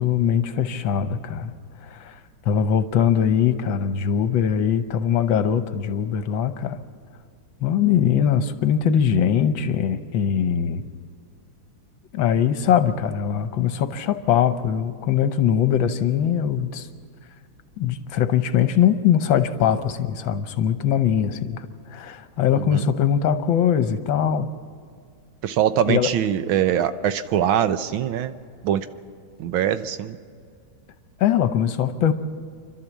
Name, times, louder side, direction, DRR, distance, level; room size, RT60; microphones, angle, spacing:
voice 1, 0.0-1.5 1.8-2.1 2.4-6.8 7.6-10.8 12.1-16.9 17.8-24.5 25.9-26.1 31.2-32.1, left 8 dB, 75° left, 10 dB, 1.6 m, -21 dB
voice 2, 22.5-22.8 25.4-28.3 28.6-28.9 29.4-30.2, right 10 dB, 80° right, 11 dB, 1.6 m, -23 dB
29.0 x 12.0 x 7.3 m, 2.1 s
omnidirectional pair, 2.2 m